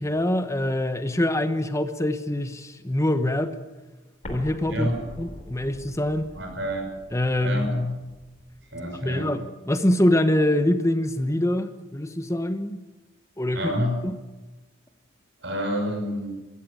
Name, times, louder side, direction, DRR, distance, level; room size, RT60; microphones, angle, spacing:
voice 1, 0.0-3.5 4.3-4.9 5.2-6.3 7.1-7.9 9.0-12.8 13.4-13.7, left 1 dB, 15° left, 1.1 m, -24 dB
Explosion, 4.2-9.0, left 1 dB, 35° left, 3.3 m, -44 dB
voice 2, 4.7-5.0 6.3-6.9 7.4-7.7 8.7-9.3 13.5-14.0 15.4-16.4, equal, 60° right, 6.0 m, -28 dB
25.0 x 14.5 x 8.4 m
head